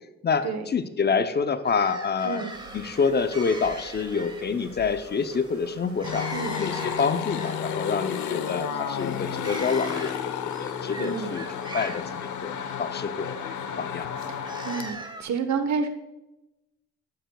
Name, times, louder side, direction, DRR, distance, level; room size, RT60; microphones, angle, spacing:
voice 1, 0.2-2.5 2.7-6.3 6.6-10.2 10.6-11.4 11.7-13.4 13.8-14.1, left 5 dB, 35° left, 10 dB, 0.6 m, -27 dB
sound 1, 1.6-15.2, right 2 dB, 15° right, 1.1 m, -43 dB
sound 2, 2.5-7.7, right 3 dB, 45° right, 2.3 m, -48 dB
sound 3, 6.0-14.9, left 8 dB, 75° left, 0.9 m, -32 dB
voice 2, 11.0-11.4 14.6-15.9, right 5 dB, 65° right, 8 dB, 1.1 m, -29 dB
12.5 x 9.1 x 2.3 m, 0.99 s
cardioid pair, 90°, 30 cm